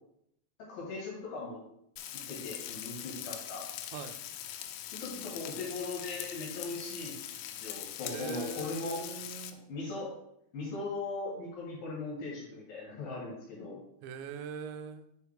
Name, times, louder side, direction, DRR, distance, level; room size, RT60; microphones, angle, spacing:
voice 1, 0.6-1.6 2.1-3.6 4.9-7.2 7.6-9.0 9.7-10.1 10.5-13.8, left 3 dB, 65° left, -3 dB, 2.9 m, -39 dB
Frying (food), 2.0-9.5, left 11 dB, 85° left, 2.8 m, -42 dB
voice 2, 8.1-9.6 14.0-15.1, right 7 dB, 90° right, 9 dB, 2.8 m, -42 dB
6.4 x 4.7 x 3.4 m, 0.77 s
omnidirectional pair, 5.0 m